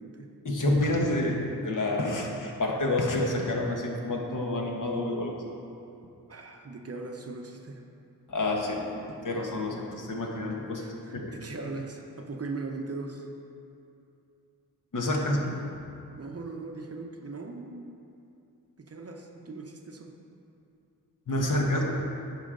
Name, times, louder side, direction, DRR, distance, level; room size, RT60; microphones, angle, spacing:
voice 1, 0.4-5.5 8.3-8.8 9.1-11.3 14.9-15.4 21.3-21.9, left 1 dB, 50° left, 0 dB, 1.2 m, -28 dB
voice 2, 6.3-7.8 10.8-13.3 15.2-15.8 16.2-17.9 18.8-20.1, right 3 dB, 40° right, 3 dB, 0.7 m, -39 dB
10.5 x 5.0 x 3.8 m, 2.6 s
cardioid pair, 70°, 39 cm